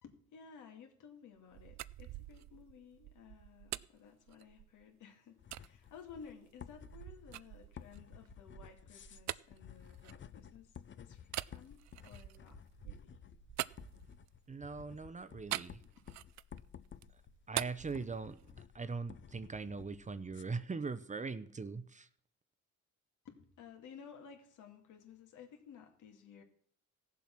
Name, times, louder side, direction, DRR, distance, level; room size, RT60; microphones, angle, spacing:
voice 1, 0.0-12.6 12.8-13.2 15.8-15.9 23.2-26.4, left 6 dB, 80° left, 4 dB, 2.3 m, -56 dB
sound 1, 1.4-4.9 5.5-5.7 6.3-10.7 11.3-14.5 15.5-16.6 16.9-18.7, right 15 dB, 65° right, 0.4 m, -45 dB
sound 2, 5.4-20.4, left 8 dB, 40° left, 0.6 m, -55 dB
voice 2, 14.5-15.8 17.5-18.4 18.7-22.1, right 4 dB, 25° right, 13 dB, 0.7 m, -41 dB
15.0 x 7.3 x 6.0 m, 0.62 s
cardioid pair, 90°, 30 cm